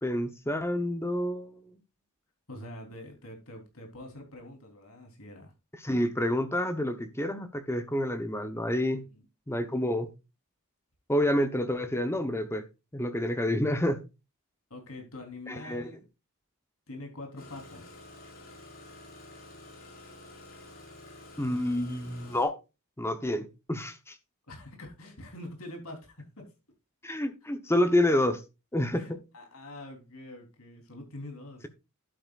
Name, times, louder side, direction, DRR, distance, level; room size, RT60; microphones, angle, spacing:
voice 1, 0.0-1.7 5.8-9.0 9.5-10.1 11.1-12.6 12.9-14.0 15.5-15.9 21.4-22.6 23.0-24.1 27.0-28.4 28.7-29.0, left 1 dB, 10° left, 0.9 m, -28 dB
voice 2, 2.5-5.5 8.9-9.2 14.7-16.0 16.9-18.0 24.5-26.5 28.9-31.7, left 1 dB, 70° left, 3.7 m, -45 dB
Engine starting, 17.4-22.4, left 2 dB, 45° left, 5.1 m, -49 dB
11.5 x 8.6 x 2.5 m
head